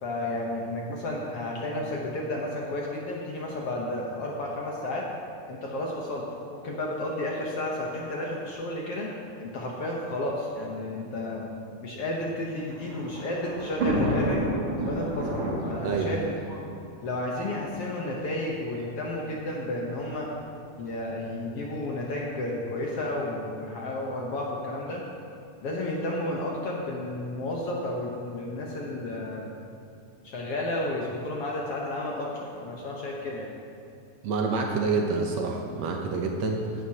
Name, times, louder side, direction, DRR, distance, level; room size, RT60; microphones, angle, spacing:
voice 1, 0.0-5.1 5.5-6.3 6.5-9.1 9.4-11.5 11.8-14.4 14.8-16.6 17.0-20.3 20.8-25.0 25.6-29.5 30.2-33.5, left 1 dB, 65° left, -2 dB, 1.6 m, -32 dB
Thunder, 12.4-17.7 18.5-18.6 18.8-18.9 20.0-20.3, right 1 dB, 45° right, 3.1 m, -30 dB
voice 2, 34.2-36.8, right 4 dB, 70° right, 1 dB, 1.9 m, -27 dB
15.5 x 11.0 x 2.9 m, 2.6 s
omnidirectional pair, 3.7 m